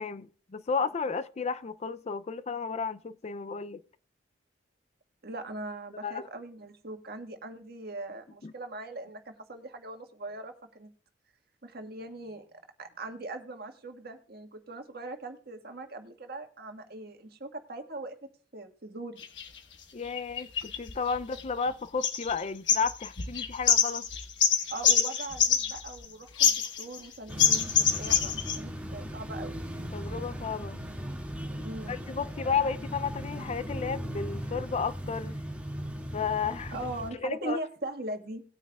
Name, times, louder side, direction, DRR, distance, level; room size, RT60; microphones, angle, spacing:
voice 1, 0.0-3.8 6.0-6.3 8.4-8.5 19.9-24.1 29.9-30.8 31.6-35.4 36.1-36.8 37.2-37.6, left 5 dB, 35° left, 0.4 m, -33 dB
voice 2, 5.2-10.9 11.6-12.5 12.8-18.2 18.5-19.2 24.7-29.6 31.6-31.9 36.7-38.4, right 2 dB, 55° right, 1.6 m, -40 dB
sound 1, 19.2-19.5 20.2-21.7 22.0-22.4 22.7-26.0 26.4-27.1 27.4-28.6, left 7 dB, 70° left, 1.2 m, -25 dB
sound 2, 27.3-37.1, equal, 10° right, 2.1 m, -38 dB
19.0 x 9.1 x 2.3 m
head